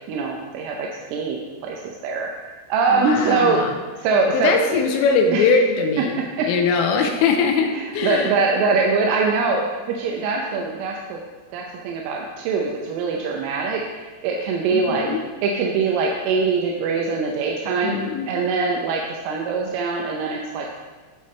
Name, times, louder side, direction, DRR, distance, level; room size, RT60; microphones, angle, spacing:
voice 1, 0.1-3.6 4.0-4.8 5.3-5.5 6.4-6.5 7.7-11.2 11.5-15.1 15.4-18.0 18.3-20.8, right 4 dB, 80° right, 0 dB, 3.2 m, -23 dB
voice 2, 2.9-3.8 4.3-6.1 6.5-8.3 14.7-15.2 17.8-18.3, left 5 dB, 85° left, 3 dB, 3.4 m, -21 dB
14.5 x 6.7 x 3.2 m, 1.3 s
omnidirectional pair, 5.8 m